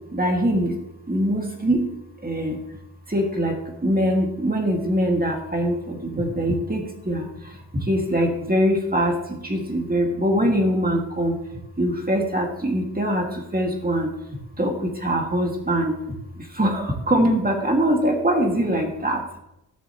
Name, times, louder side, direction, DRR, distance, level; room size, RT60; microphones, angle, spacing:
voice 1, 0.1-0.7 1.1-1.8 2.2-2.6 3.1-3.5 3.8-7.3 7.9-9.2 9.4-11.4 11.8-13.3 13.5-14.1 14.6-14.8 15.0-15.9 16.6-19.2, equal, 20° right, 2 dB, 2.1 m, -22 dB
14.0 x 6.7 x 3.1 m, 0.86 s
cardioid pair, 50°, 44 cm